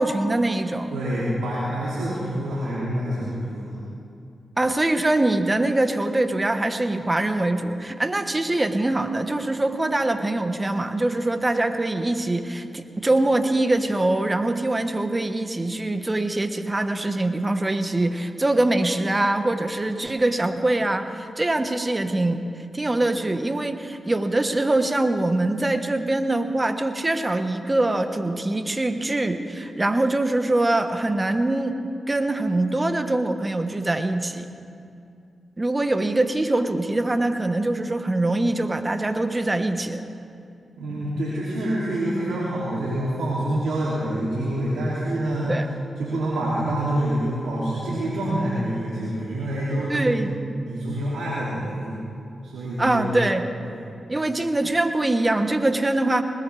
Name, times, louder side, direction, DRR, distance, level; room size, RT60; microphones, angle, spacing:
voice 1, 0.0-0.9 4.6-22.5 22.7-34.5 35.6-40.0 45.5-45.7 49.9-50.5 52.8-53.5 54.1-56.2, right 2 dB, 25° right, 8 dB, 1.3 m, -23 dB
voice 2, 0.9-3.7 40.8-45.5 46.0-50.1 50.7-51.9 52.4-53.1 53.6-53.8, right 1 dB, 90° right, -8 dB, 2.8 m, -26 dB
20.5 x 20.0 x 3.4 m, 2.5 s
supercardioid pair, 45°, 0 cm